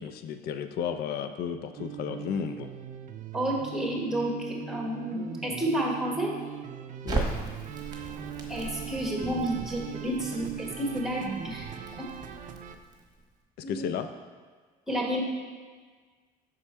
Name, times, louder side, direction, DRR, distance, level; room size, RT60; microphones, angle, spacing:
voice 1, 0.0-2.7 7.0-7.3 13.7-14.1, left 7 dB, 70° left, 9 dB, 0.4 m, -33 dB
sound 1, 1.8-12.8, right 8 dB, 50° right, 0.4 m, -40 dB
voice 2, 3.3-6.3 8.5-11.7 12.0-12.1 13.6-13.9 14.9-15.2, right 1 dB, 5° right, -2 dB, 1.3 m, -30 dB
Crackle, 7.1-13.2, right 3 dB, 25° right, 1.1 m, -38 dB
6.1 x 4.5 x 4.3 m, 1.5 s
cardioid pair, 110°, 17 cm